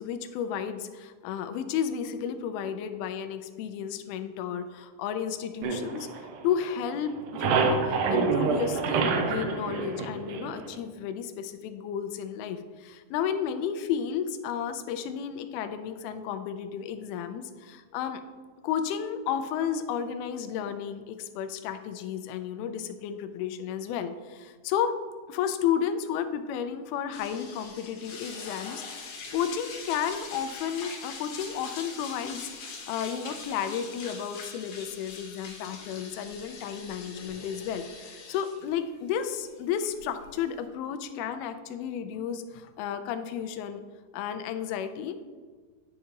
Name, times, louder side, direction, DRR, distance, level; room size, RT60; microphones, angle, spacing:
voice 1, 0.0-6.1 6.4-18.2 18.6-24.9 25.3-43.8 44.1-45.2, left 8 dB, 85° left, 9 dB, 2.5 m, -32 dB
sound 1, 5.6-6.8 7.1-10.8, right 5 dB, 85° right, 1.9 m, -27 dB
sound 2, 27.1-40.7, left 4 dB, 65° left, 2.3 m, -43 dB
10.5 x 5.6 x 2.9 m, 1.5 s
omnidirectional pair, 4.4 m